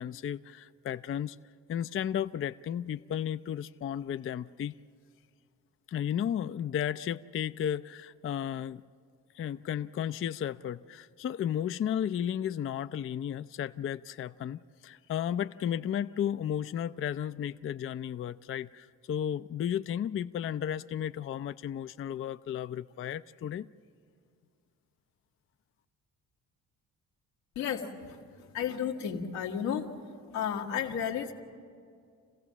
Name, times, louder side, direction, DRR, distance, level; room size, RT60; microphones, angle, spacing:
voice 1, 0.0-1.4 1.7-4.7 5.9-8.8 9.3-23.7, left 9 dB, 35° left, 12 dB, 0.4 m, -34 dB
voice 2, 27.5-28.2 28.5-29.9 30.3-31.3, left 8 dB, 90° left, -1 dB, 1.6 m, -32 dB
27.5 x 15.5 x 7.4 m, 2.3 s
supercardioid pair, 60°, 39 cm